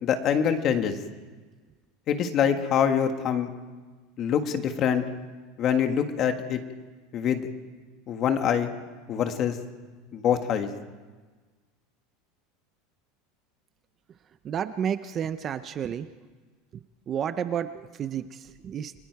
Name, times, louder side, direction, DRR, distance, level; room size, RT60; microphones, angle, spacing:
voice 1, 0.0-1.0 2.1-3.5 4.2-5.0 5.6-6.6 7.1-7.5 8.1-8.7 9.1-9.6 10.1-10.7, left 8 dB, 30° left, 7 dB, 1.6 m, -24 dB
voice 2, 14.4-16.1 17.1-18.9, right 8 dB, 25° right, 12 dB, 0.6 m, -31 dB
30.0 x 22.0 x 4.7 m, 1.4 s
supercardioid pair, 170°, 0 cm